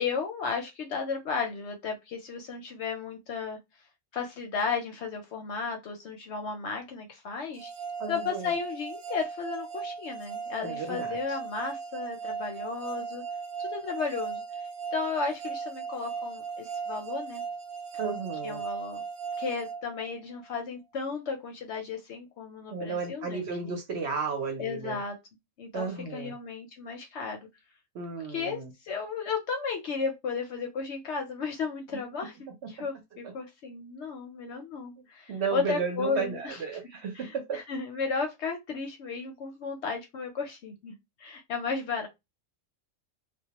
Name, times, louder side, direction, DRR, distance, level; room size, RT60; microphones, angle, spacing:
voice 1, 0.0-3.6 4.1-7.7 8.1-13.2 13.6-14.4 14.9-17.4 18.4-19.0 19.4-23.7 24.6-25.2 25.6-27.5 28.3-36.6 37.1-42.1, left 5 dB, 65° left, 0.8 m, -34 dB
sound 1, 7.6-20.5, right 6 dB, 85° right, 1.0 m, -37 dB
voice 2, 8.0-8.5 10.6-11.2 18.0-18.6 22.7-25.0 25.7-26.3 27.9-28.7 32.6-32.7 35.3-37.6, right 5 dB, 60° right, 0.8 m, -33 dB
2.2 x 2.1 x 2.8 m
omnidirectional pair, 1.4 m